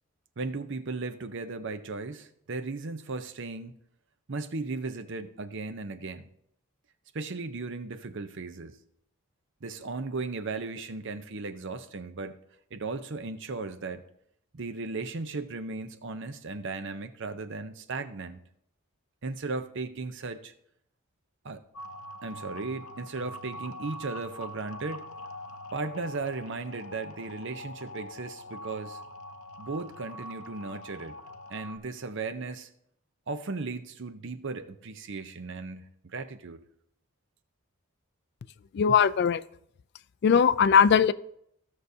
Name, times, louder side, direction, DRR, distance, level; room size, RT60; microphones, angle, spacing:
voice 1, 0.4-3.7 4.3-6.3 7.1-8.8 9.6-12.4 12.7-14.0 14.5-18.4 19.2-20.5 21.4-21.6 22.2-25.1 25.7-29.0 29.6-31.2 31.5-32.7 33.3-36.6, right 3 dB, 55° right, 11 dB, 0.7 m, -36 dB
sound 1, 21.7-31.8, left 1 dB, 80° left, 0.8 m, -43 dB
voice 2, 38.7-39.4 40.2-41.1, left 7 dB, 50° left, 16 dB, 0.3 m, -20 dB
15.5 x 6.5 x 2.7 m, 0.72 s
head